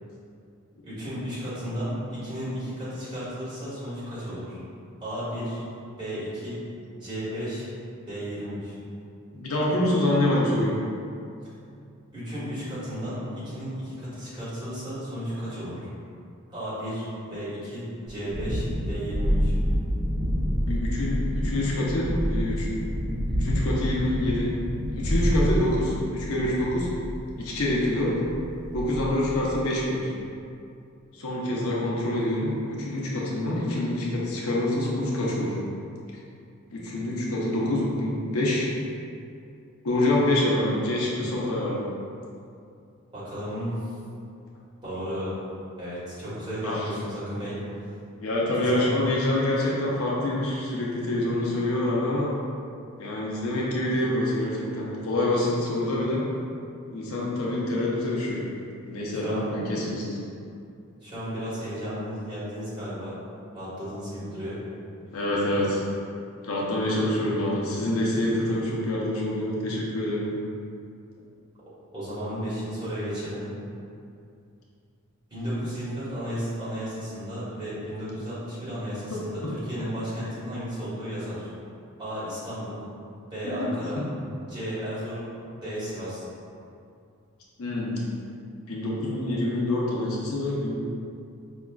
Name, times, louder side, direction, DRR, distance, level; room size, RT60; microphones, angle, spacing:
voice 1, 0.8-4.6 5.0-5.6 6.0-6.6 7.0-7.7 8.0-8.8 12.1-15.9 16.5-19.5 43.1-43.9 44.8-45.4 45.8-47.6 48.5-48.9 59.1-59.5 61.0-63.2 63.5-64.6 71.9-73.5 75.3-81.5 82.0-82.8 83.3-84.0 84.5-85.3 85.6-86.2, equal, 20° right, -12 dB, 1.4 m, -33 dB
voice 2, 9.3-10.7 20.7-22.7 23.3-24.5 24.9-26.9 27.4-28.1 28.7-30.1 31.1-35.5 36.7-38.7 39.8-41.8 46.6-46.8 48.2-52.3 53.0-56.2 56.9-58.4 58.8-60.2 65.1-65.8 66.4-70.2 79.4-79.5 83.4-83.6 87.6-88.0 88.7-90.7, left 1 dB, 75° left, -5 dB, 0.7 m, -26 dB
Thunderstorm, 18.1-29.6, equal, 45° right, 1.1 m, -28 dB
5.2 x 2.4 x 2.3 m, 2.5 s
head